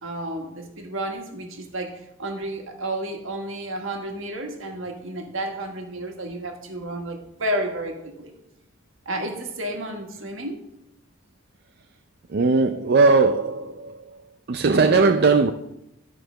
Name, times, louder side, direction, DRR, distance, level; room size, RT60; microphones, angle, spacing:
voice 1, 0.0-8.3 9.1-10.6, right 1 dB, 65° right, 3 dB, 1.7 m, -31 dB
voice 2, 12.3-14.0 14.5-15.5, right 4 dB, 45° right, 7 dB, 0.4 m, -18 dB
12.5 x 4.8 x 6.3 m, 0.85 s
head